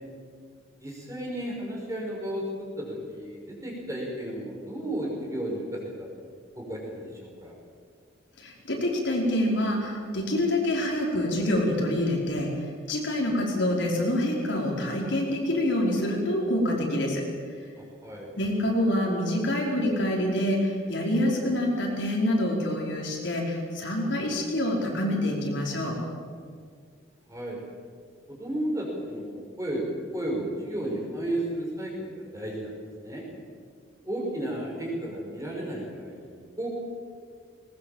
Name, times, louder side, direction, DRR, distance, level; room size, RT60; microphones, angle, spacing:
voice 1, 0.8-6.1 6.6-7.5 17.8-18.3 27.3-27.6 28.3-29.9 30.1-32.8 33.0-33.2 34.0-36.7, right 1 dB, 15° right, -2 dB, 5.8 m, -33 dB
voice 2, 8.4-17.2 18.4-25.9, left 1 dB, 65° left, -2 dB, 4.9 m, -26 dB
20.5 x 20.0 x 7.4 m, 2.1 s
head